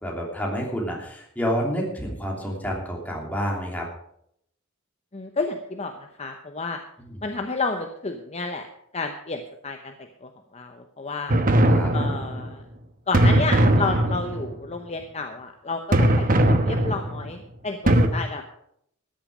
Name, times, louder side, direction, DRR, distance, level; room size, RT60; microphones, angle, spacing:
voice 1, 0.0-3.9 7.0-7.2 11.6-11.9 16.3-16.7, equal, 10° left, -2 dB, 3.0 m, -29 dB
voice 2, 5.1-6.8 7.2-8.7 8.9-9.9 10.2-11.4 11.9-12.6 13.1-18.4, left 3 dB, 30° left, 5 dB, 0.9 m, -31 dB
sound 1, 11.3-12.5 13.1-14.5 15.9-17.3 17.9-18.1, right 1 dB, 45° right, 1.1 m, -20 dB
13.5 x 10.5 x 5.1 m, 0.71 s
head